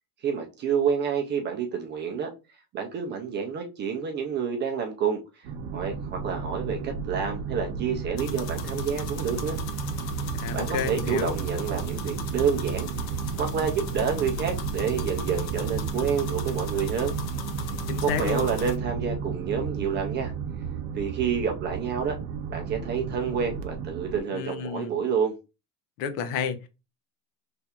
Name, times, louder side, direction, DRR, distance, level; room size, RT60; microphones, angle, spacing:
voice 1, 0.2-2.3 2.7-5.2 5.7-9.6 10.5-12.9 13.4-17.1 18.0-20.3 21.0-22.1 22.5-25.3, right 7 dB, 25° right, 0.4 m, -28 dB
sound 1, 5.4-24.2, right 6 dB, 55° right, 0.8 m, -32 dB
sound 2, 8.2-18.8, left 6 dB, 35° left, 0.5 m, -40 dB
voice 2, 10.4-11.4 17.9-18.5 24.3-25.0 26.0-26.7, left 7 dB, 70° left, 0.9 m, -30 dB
4.3 x 3.3 x 2.4 m
supercardioid pair, 150°, 48 cm